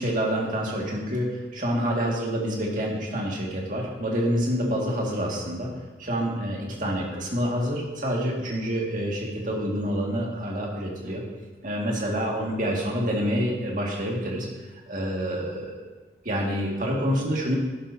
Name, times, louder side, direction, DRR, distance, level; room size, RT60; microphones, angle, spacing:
voice 1, 0.0-5.7 6.0-11.2 11.6-14.5 14.9-15.7 16.2-17.6, equal, 45° right, -2 dB, 2.0 m, -27 dB
12.0 x 11.0 x 2.8 m, 1.3 s
head